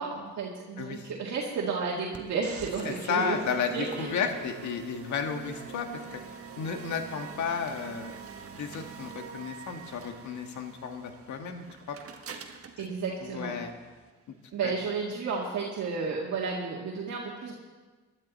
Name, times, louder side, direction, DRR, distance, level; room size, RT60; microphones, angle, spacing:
voice 1, 0.0-3.4 3.7-4.1 12.8-13.6 14.5-17.5, right 5 dB, 65° right, -3 dB, 2.1 m, -32 dB
voice 2, 0.8-1.1 2.9-6.2 6.6-8.2 8.5-12.0 13.2-13.7 14.6-14.7, left 6 dB, 70° left, 5 dB, 1.7 m, -33 dB
sound 1, 2.1-14.1, right 6 dB, 50° right, 1.5 m, -45 dB
18.5 x 12.0 x 4.2 m, 1.3 s
cardioid pair, 90°, 30 cm